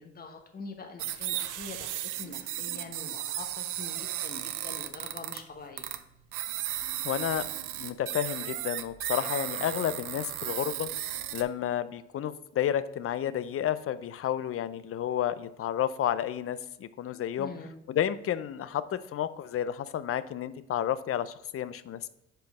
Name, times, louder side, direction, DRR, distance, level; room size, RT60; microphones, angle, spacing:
voice 1, 0.0-1.9 2.2-5.9 17.4-17.7, left 4 dB, 30° left, 4 dB, 1.0 m, -44 dB
sound 1, 1.0-5.4 5.8-6.0 6.3-11.4, right 13 dB, 90° right, 0.6 m, -35 dB
voice 2, 7.0-7.5 7.8-10.9 11.3-17.5 17.9-22.1, left 10 dB, 50° left, 15 dB, 0.5 m, -31 dB
5.2 x 4.5 x 5.9 m, 0.85 s
cardioid pair, 90°, 30 cm